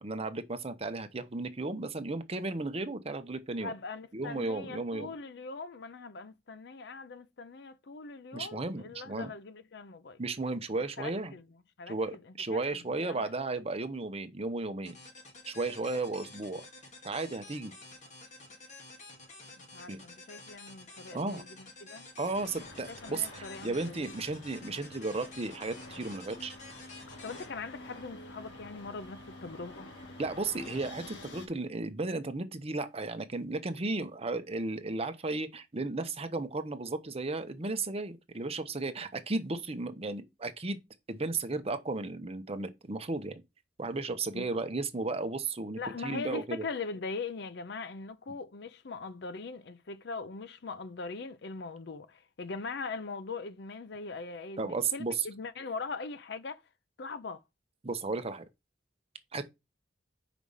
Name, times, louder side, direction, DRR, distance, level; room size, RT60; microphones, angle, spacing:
voice 1, 0.0-3.7 4.1-5.1 8.3-9.3 10.2-11.3 11.9-15.0 15.5-16.6 17.0-17.7 19.9-20.0 21.1-21.4 22.2-26.6 30.2-40.8 41.1-43.4 43.8-46.6 54.6-55.3 57.8-58.4 59.3-59.5, right 3 dB, 35° right, 0.8 m, -34 dB
voice 2, 3.6-10.2 11.0-11.4 11.8-13.3 19.7-22.1 22.9-24.2 27.2-29.9 44.3-44.5 45.8-56.6 57.0-57.4, left 4 dB, 65° left, 0.6 m, -41 dB
sound 1, 14.8-28.5, left 2 dB, 40° left, 2.1 m, -51 dB
sound 2, 22.3-31.5, left 2 dB, 90° left, 1.9 m, -48 dB
5.1 x 4.9 x 5.5 m
head